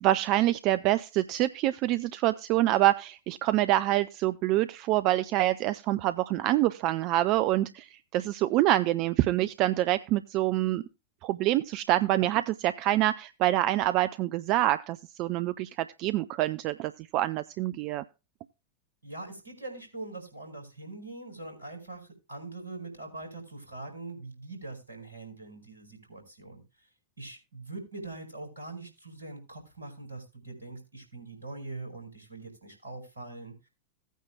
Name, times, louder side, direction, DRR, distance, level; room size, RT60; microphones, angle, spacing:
voice 1, 0.0-10.8 11.2-18.0, right 15 dB, 40° right, 14 dB, 0.5 m, -26 dB
voice 2, 19.0-26.9 27.2-33.7, right 2 dB, 75° right, 4 dB, 4.9 m, -43 dB
17.0 x 9.2 x 2.3 m, 0.28 s
figure-of-eight pair, 90°, 0 cm